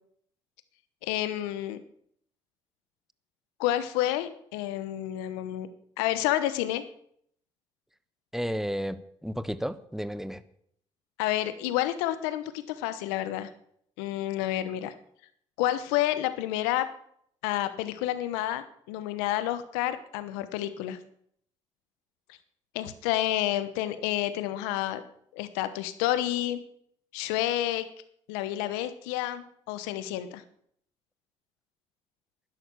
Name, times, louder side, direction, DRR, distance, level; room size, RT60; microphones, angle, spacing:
voice 1, 1.0-1.8 3.6-5.7 6.0-6.8 11.2-13.5 14.0-14.9 15.6-16.9 17.4-21.0 22.3-22.4 22.7-25.0 25.3-26.6 27.1-27.9 28.3-30.4, left 13 dB, 85° left, 13 dB, 1.1 m, -29 dB
voice 2, 8.3-10.4, equal, 5° right, 14 dB, 1.2 m, -32 dB
11.5 x 10.5 x 7.0 m, 0.68 s
hypercardioid pair, 50°, 13 cm